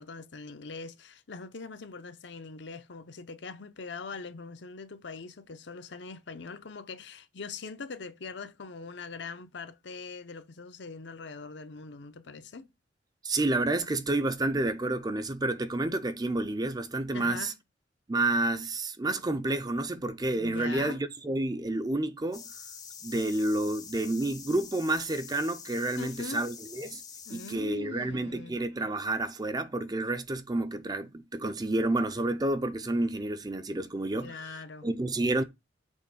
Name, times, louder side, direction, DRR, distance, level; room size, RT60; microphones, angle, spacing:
voice 1, 0.0-12.7 17.1-17.5 20.4-21.0 26.0-26.4 27.3-28.6 34.2-34.9, left 4 dB, 70° left, 0.7 m, -42 dB
voice 2, 13.2-17.5 18.1-22.4 23.0-27.0 27.3-35.4, right 2 dB, 20° right, 0.5 m, -30 dB
sound 1, 22.3-27.6, left 6 dB, 20° left, 0.6 m, -46 dB
6.4 x 3.1 x 5.5 m
head